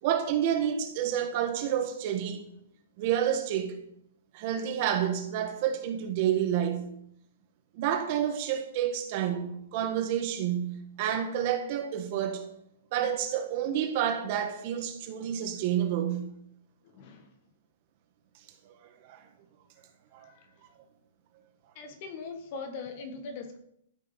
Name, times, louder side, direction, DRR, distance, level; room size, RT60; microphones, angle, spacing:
voice 1, 0.0-2.4 3.0-3.8 4.3-6.9 7.7-12.5 12.9-16.3 19.0-19.2 20.1-20.3, right 9 dB, 30° right, 1.5 m, -29 dB
voice 2, 17.0-17.3 20.2-20.4 21.8-23.6, left 4 dB, 30° left, 1.6 m, -40 dB
13.5 x 8.1 x 5.8 m
hypercardioid pair, 175°, 0 cm